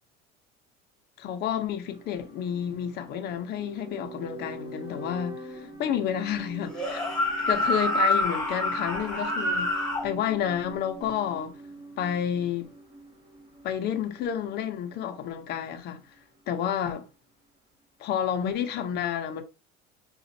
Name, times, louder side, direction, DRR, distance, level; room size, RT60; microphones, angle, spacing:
voice 1, 1.2-7.1 7.4-11.6 12.0-12.7 13.6-16.0 16.5-17.1 18.0-19.4, left 9 dB, 50° left, 0.8 m, -30 dB
sound 1, 1.8-15.9 16.2-16.3, right 1 dB, 20° right, 1.4 m, -44 dB
sound 2, 6.7-10.1, left 1 dB, 5° left, 1.7 m, -27 dB
5.1 x 2.5 x 2.7 m
cardioid pair, 130°, 21 cm